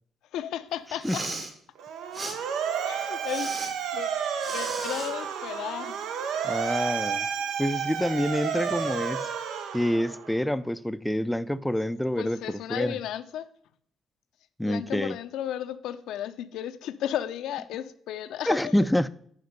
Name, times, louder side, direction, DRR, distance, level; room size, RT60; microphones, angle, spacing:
voice 1, 0.3-1.2 2.8-3.5 3.9-4.2 4.5-6.1 12.2-13.5 14.6-18.8, left 11 dB, 85° left, 0.5 m, -34 dB
Respiratory sounds, 0.9-1.5 2.1-2.4 3.2-3.7 4.4-5.1, right 2 dB, 50° right, 1.7 m, -36 dB
Motor vehicle (road) / Siren, 1.8-10.4, right 7 dB, 85° right, 0.7 m, -31 dB
voice 2, 6.4-7.3 7.6-9.3 9.7-12.9 14.6-15.2 18.5-19.1, equal, 5° left, 0.4 m, -27 dB
9.5 x 5.2 x 5.2 m
cardioid pair, 90°, 0 cm